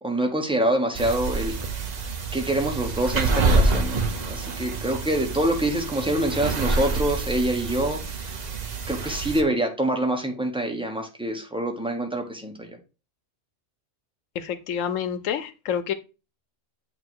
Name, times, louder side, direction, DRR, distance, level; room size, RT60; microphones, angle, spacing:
voice 1, 0.0-1.8 2.3-8.4 8.9-12.8, right 1 dB, 5° right, 1.0 m, -26 dB
sound 1, 1.0-9.4, right 3 dB, 40° right, 0.7 m, -27 dB
voice 2, 14.4-15.9, left 8 dB, 85° left, 1.0 m, -28 dB
8.1 x 2.7 x 4.5 m
omnidirectional pair, 1.3 m